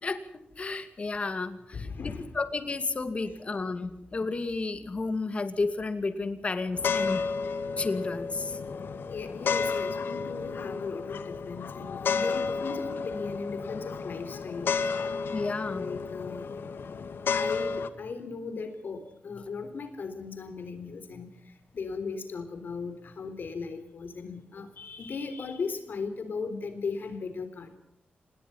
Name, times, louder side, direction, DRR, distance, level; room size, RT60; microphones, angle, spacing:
voice 1, 0.6-7.3 7.8-8.6 15.3-15.9, left 3 dB, 35° left, 9 dB, 2.4 m, -32 dB
voice 2, 1.7-2.3 9.1-15.1 15.7-16.5 17.3-21.3 21.7-27.8, left 4 dB, 65° left, 9 dB, 3.6 m, -37 dB
sound 1, 6.7-17.9, left 5 dB, 80° left, 1.7 m, -32 dB
27.0 x 20.5 x 5.6 m, 0.78 s
wide cardioid pair, 155°, 4 cm